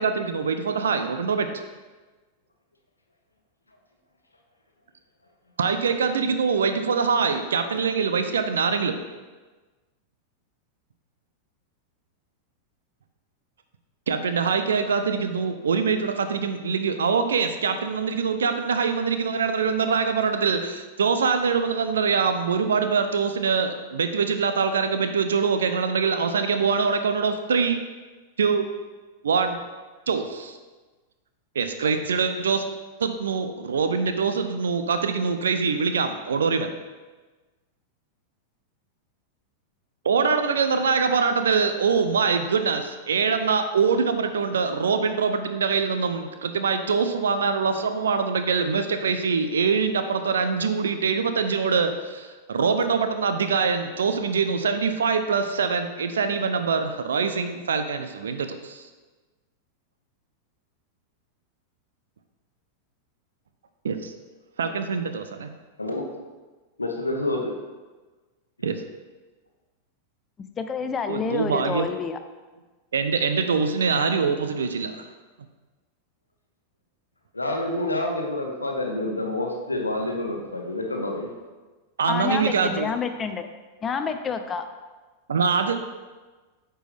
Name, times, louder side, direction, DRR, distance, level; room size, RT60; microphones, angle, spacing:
voice 1, 0.0-1.5 5.6-9.0 14.1-27.8 28.4-28.7 29.2-29.6 30.1-30.6 31.6-32.6 33.0-36.7 40.0-58.9 63.8-64.1 64.6-65.5 68.6-68.7 71.1-71.9 72.9-75.1 82.0-82.9 85.3-85.7, right 5 dB, 70° right, 8 dB, 0.6 m, -24 dB
voice 2, 65.8-66.1 66.8-67.5 77.3-81.3, left 1 dB, 90° left, 1 dB, 1.0 m, -28 dB
voice 3, 70.6-72.2 82.1-83.5 83.8-84.6, left 6 dB, 25° left, 8 dB, 0.6 m, -28 dB
8.8 x 4.5 x 3.4 m, 1.3 s
figure-of-eight pair, 95°, 0 cm